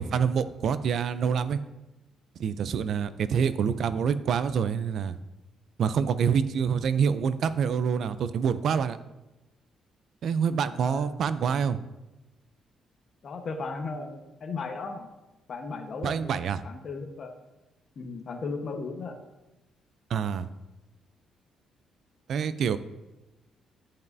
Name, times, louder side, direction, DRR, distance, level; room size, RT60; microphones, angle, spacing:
voice 1, 0.0-1.6 2.4-5.2 5.8-9.0 10.2-11.8 16.0-16.6 20.1-20.5 22.3-22.8, right 7 dB, 65° right, 13 dB, 0.4 m, -26 dB
voice 2, 10.7-11.1 13.2-15.1 15.5-16.4 16.6-17.4 18.0-19.2, left 4 dB, 50° left, 5 dB, 1.1 m, -36 dB
13.0 x 5.4 x 2.7 m, 1.0 s
cardioid pair, 90°, 0 cm